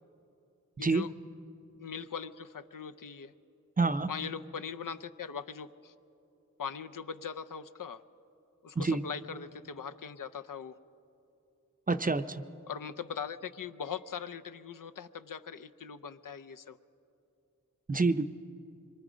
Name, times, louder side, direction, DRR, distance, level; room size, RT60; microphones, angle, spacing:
voice 1, 0.8-1.1 1.8-3.3 4.1-5.9 6.6-8.0 8.6-10.7 12.7-16.8, left 7 dB, 80° left, 12 dB, 0.6 m, -40 dB
voice 2, 3.8-4.1 8.8-9.0 11.9-12.4 17.9-18.2, right 3 dB, 25° right, 10 dB, 0.6 m, -27 dB
25.0 x 22.5 x 5.1 m, 2.7 s
wide cardioid pair, 85°, 32 cm